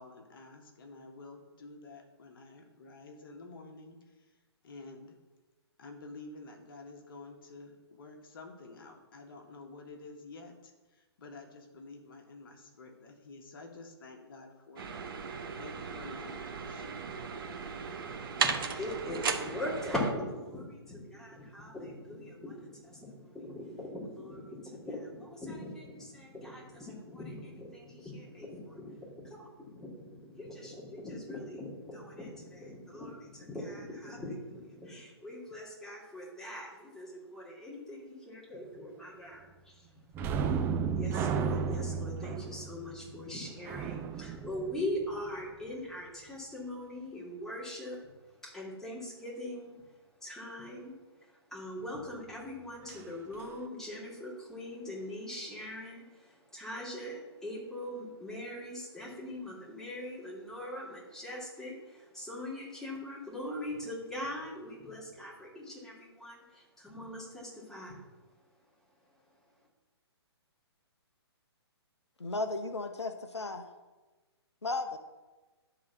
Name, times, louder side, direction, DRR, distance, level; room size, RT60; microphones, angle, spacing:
voice 1, 0.0-5.2 5.8-17.1, left 3 dB, 55° left, 2 dB, 1.6 m, -50 dB
sound 1, 14.8-20.1, right 5 dB, 55° right, 1.0 m, -36 dB
voice 2, 17.9-39.9 40.8-48.1 48.4-49.8 50.2-50.9 51.2-68.0, left 1 dB, 5° left, -7 dB, 2.6 m, -41 dB
sound 2, 40.1-45.5 52.9-53.0 53.4-53.6, right 6 dB, 15° right, 0.4 m, -34 dB
voice 3, 72.2-73.7 74.6-75.0, left 2 dB, 85° left, 8 dB, 0.7 m, -35 dB
11.5 x 3.9 x 6.0 m, 1.2 s
figure-of-eight pair, 130°, 14 cm